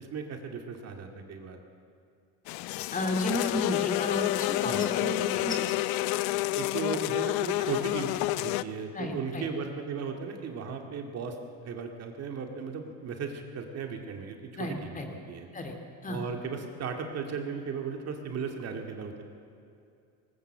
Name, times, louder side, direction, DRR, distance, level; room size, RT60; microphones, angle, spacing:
voice 1, 0.0-1.6 4.7-4.9 6.6-11.4 11.6-15.0 15.3-15.5 16.1-19.2, right 5 dB, 45° right, 4 dB, 2.2 m, -36 dB
sound 1, 2.5-8.6, left 17 dB, 80° left, 0.7 m, -29 dB
voice 2, 2.9-5.7 8.9-9.5 14.6-15.1 15.5-15.8 16.0-16.2, left 1 dB, 25° left, 4 dB, 2.3 m, -33 dB
19.5 x 19.0 x 7.6 m, 2.6 s
cardioid pair, 130°, 35 cm